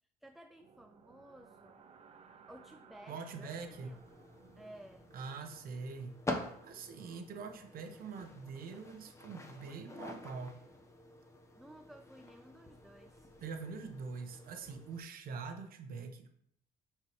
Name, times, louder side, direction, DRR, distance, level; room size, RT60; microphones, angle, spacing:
voice 1, 0.2-1.9 2.5-3.5 3.8-4.0 4.6-5.1 11.6-13.3, right 1 dB, ahead, 7 dB, 0.3 m, -55 dB
sound 1, 0.6-8.6, right 6 dB, 40° right, 0.7 m, -62 dB
voice 2, 3.1-3.9 5.1-6.2 6.6-10.6 13.4-16.4, right 4 dB, 60° right, 6 dB, 1.0 m, -44 dB
sound 2, 3.5-15.0, left 1 dB, 15° left, 1.0 m, -47 dB
9.0 x 4.6 x 3.1 m, 0.69 s
cardioid pair, 110°, 17 cm